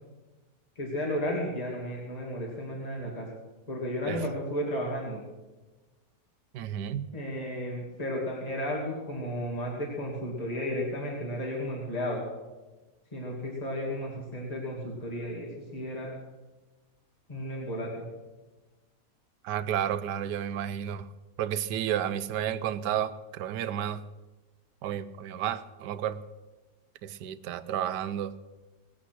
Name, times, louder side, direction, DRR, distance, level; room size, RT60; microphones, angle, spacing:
voice 1, 0.8-3.3 3.7-5.2 7.1-12.2 13.1-16.1 17.3-18.0, equal, 20° left, -2 dB, 2.5 m, -33 dB
voice 2, 6.5-7.0 19.4-21.1 21.4-24.0 24.8-26.2 27.0-28.3, right 10 dB, 80° right, 14 dB, 1.3 m, -31 dB
19.0 x 8.7 x 6.0 m, 1.2 s
omnidirectional pair, 1.8 m